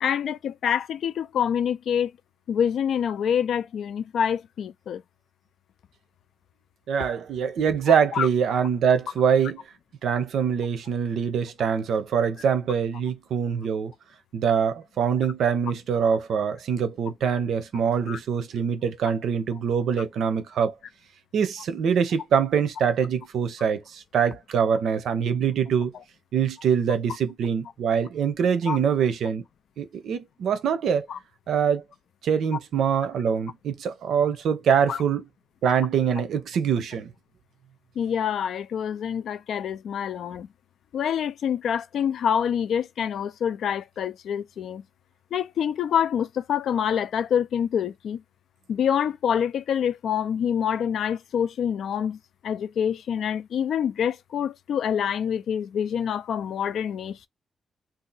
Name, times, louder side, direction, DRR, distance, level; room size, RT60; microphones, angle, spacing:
voice 1, 0.0-2.1 2.5-5.0 8.1-8.3 18.1-18.2 28.7-28.8 31.1-31.2 34.9-35.0 38.0-40.5 40.9-44.8 45.3-48.2 48.7-57.3, left 8 dB, 70° left, 0.4 m, -26 dB
voice 2, 6.9-9.6 10.0-13.9 14.3-20.7 21.3-25.9 26.3-29.4 29.8-31.1 31.5-31.8 32.2-35.2 35.6-37.1, right 7 dB, 80° right, 0.7 m, -24 dB
2.8 x 2.4 x 3.9 m
wide cardioid pair, 175°, 0 cm